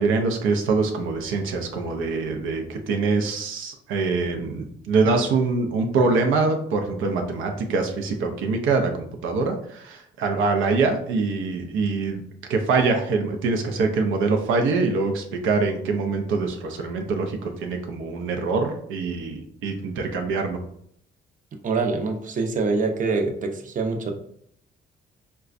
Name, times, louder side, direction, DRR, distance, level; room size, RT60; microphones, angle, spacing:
voice 1, 0.0-12.2 12.5-20.6, right 4 dB, 85° right, 4 dB, 0.5 m, -24 dB
voice 2, 21.6-24.2, right 3 dB, 40° right, 3 dB, 0.6 m, -25 dB
3.9 x 2.2 x 2.4 m, 0.67 s
cardioid pair, 90°, 20 cm